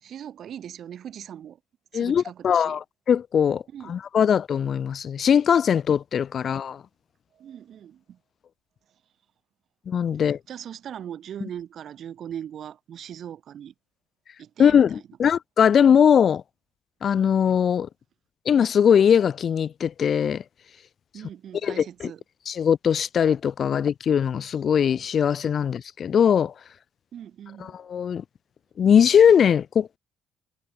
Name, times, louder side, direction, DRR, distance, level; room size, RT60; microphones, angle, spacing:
voice 1, 0.0-1.6 1.9-2.8 3.7-4.0 6.4-6.6 7.3-8.2 10.2-13.7 14.4-15.0 21.1-22.2 27.1-27.7, right 9 dB, 50° right, 2.3 m, -40 dB
voice 2, 1.9-3.6 3.9-6.8 9.9-10.4 14.6-16.4 17.0-17.9 18.5-20.4 21.6-22.1 22.5-26.5 27.9-28.2 28.8-30.0, left 8 dB, 45° left, 0.4 m, -20 dB
figure-of-eight pair, 50°, 0 cm